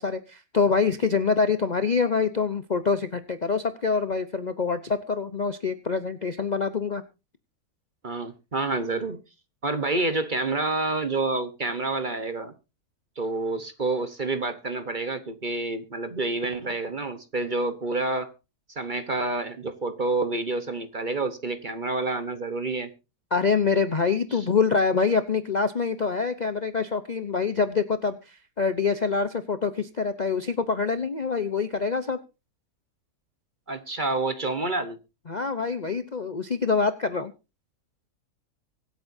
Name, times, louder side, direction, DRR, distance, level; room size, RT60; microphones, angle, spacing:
voice 1, 0.0-7.0 23.3-32.2 35.3-37.3, left 5 dB, 40° left, 0.7 m, -25 dB
voice 2, 8.0-9.2 9.6-12.5 13.2-18.3 18.8-22.9 24.3-24.4 33.7-35.0, right 2 dB, 35° right, 1.1 m, -28 dB
24.5 x 8.7 x 2.7 m
omnidirectional pair, 1.7 m